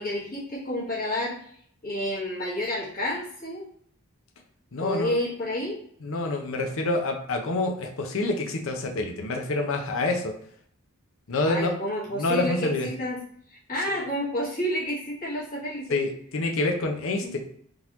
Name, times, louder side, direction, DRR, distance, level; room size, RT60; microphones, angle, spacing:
voice 1, 0.0-1.4 1.8-3.7 4.8-5.8 11.4-13.2 13.5-16.0 17.2-17.4, left 1 dB, 40° left, -8 dB, 1.5 m, -30 dB
voice 2, 4.7-5.1 6.0-10.4 11.3-11.7 12.1-12.9 15.9-17.4, left 2 dB, 65° left, 3 dB, 0.6 m, -27 dB
3.8 x 2.9 x 2.6 m, 0.62 s
head